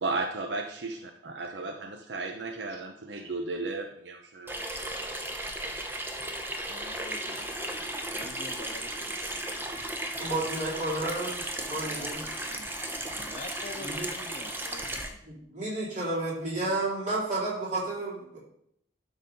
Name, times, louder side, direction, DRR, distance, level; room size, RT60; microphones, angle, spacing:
voice 1, 0.0-1.0 1.2-4.5, right 3 dB, 70° right, 5 dB, 0.7 m, -34 dB
Water tap faucet / Sink (filling or washing), 4.5-15.1, right 1 dB, 10° right, 0.8 m, -35 dB
voice 2, 6.7-9.7 11.5-12.7 13.1-15.2, left 2 dB, 40° left, 6 dB, 0.8 m, -47 dB
voice 3, 10.2-12.3 13.8-14.1 15.3-18.4, right 2 dB, 40° right, -6 dB, 4.1 m, -32 dB
12.0 x 4.0 x 5.4 m, 0.70 s
head